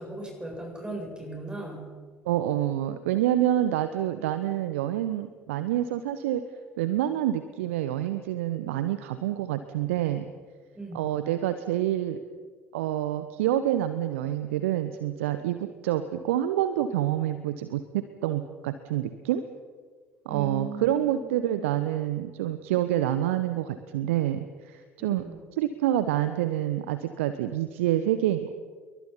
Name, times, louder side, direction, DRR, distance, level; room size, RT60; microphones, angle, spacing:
voice 1, 0.0-1.9 10.7-11.2 20.3-21.7 25.0-25.4, right 2 dB, 10° right, 0 dB, 7.8 m, -38 dB
voice 2, 2.2-6.4 6.8-10.2 10.9-12.2 12.7-19.4 20.2-25.2 25.6-28.5, right 12 dB, 65° right, 11 dB, 1.1 m, -27 dB
28.0 x 23.0 x 5.7 m, 1.5 s
figure-of-eight pair, 60°, 7 cm